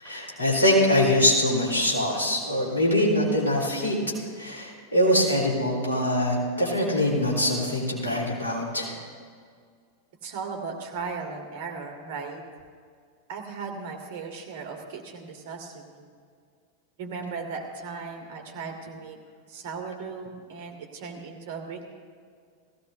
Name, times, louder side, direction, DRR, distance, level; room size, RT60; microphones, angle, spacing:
voice 1, 0.0-4.0 4.4-8.9, left 1 dB, 75° left, -4 dB, 3.6 m, -23 dB
voice 2, 10.2-12.4 13.3-16.1 17.0-19.2 19.5-21.8, right 5 dB, 50° right, 3 dB, 2.0 m, -37 dB
18.0 x 16.0 x 2.6 m, 2.1 s
figure-of-eight pair, 90°, 0 cm